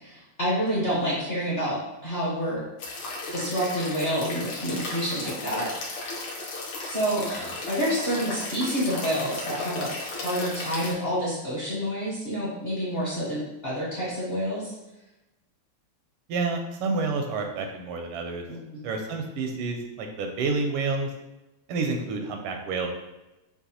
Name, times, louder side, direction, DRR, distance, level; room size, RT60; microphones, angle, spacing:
voice 1, 0.0-2.6 3.3-6.1 6.8-14.7 18.5-18.8, equal, 40° left, -8 dB, 1.0 m, -28 dB
sound 1, 2.8-10.9, left 2 dB, 65° left, 1.5 m, -35 dB
voice 2, 16.3-18.4 18.8-21.1 21.7-22.9, right 3 dB, 85° right, 4 dB, 1.6 m, -29 dB
6.6 x 2.3 x 2.8 m, 0.97 s
omnidirectional pair, 2.4 m